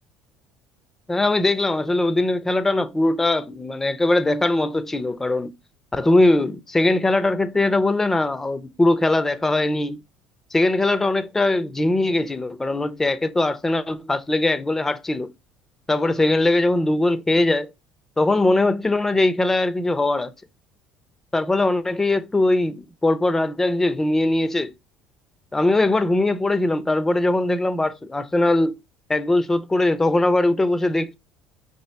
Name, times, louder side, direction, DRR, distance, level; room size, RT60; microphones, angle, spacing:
voice 1, 1.1-5.5 5.9-10.0 10.5-15.3 15.9-17.7 18.2-20.3 21.3-24.7 25.5-28.8 29.1-31.1, left 2 dB, 15° left, 0.6 m, -21 dB
5.4 x 2.9 x 3.2 m
supercardioid pair, 95°, 3 cm